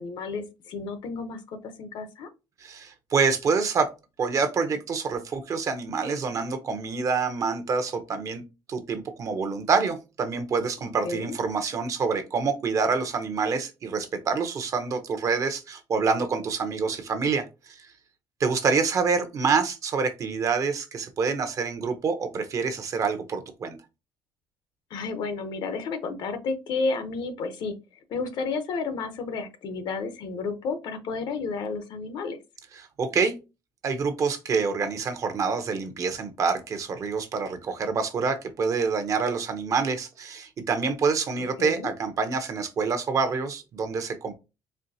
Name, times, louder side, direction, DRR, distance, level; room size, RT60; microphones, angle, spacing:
voice 1, 0.0-2.3 11.0-11.3 24.9-27.8 28.1-32.4 41.6-41.9, left 4 dB, 60° left, 9 dB, 0.8 m, -31 dB
voice 2, 2.6-3.9 4.2-8.4 8.7-17.9 18.4-23.8 32.8-33.3 33.8-44.3, right 5 dB, 40° right, 8 dB, 0.7 m, -27 dB
4.4 x 3.0 x 2.7 m, 0.27 s
cardioid pair, 140°, 8 cm